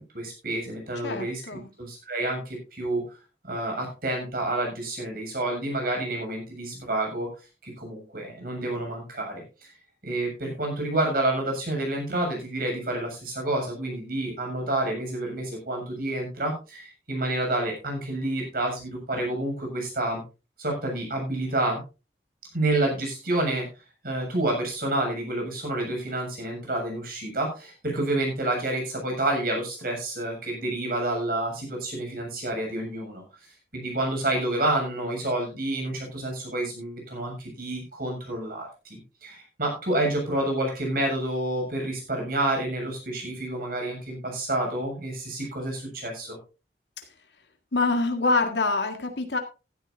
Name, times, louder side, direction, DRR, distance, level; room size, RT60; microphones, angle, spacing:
voice 1, 0.0-1.4 1.8-3.2 3.4-7.3 7.6-9.8 10.0-20.2 20.6-21.8 22.5-23.7 24.0-46.4, right 1 dB, 55° right, 2 dB, 7.3 m, -29 dB
voice 2, 1.0-1.7 47.0-47.1 47.7-49.4, left 3 dB, 80° left, 5 dB, 1.8 m, -25 dB
16.0 x 12.5 x 2.7 m, 0.30 s
head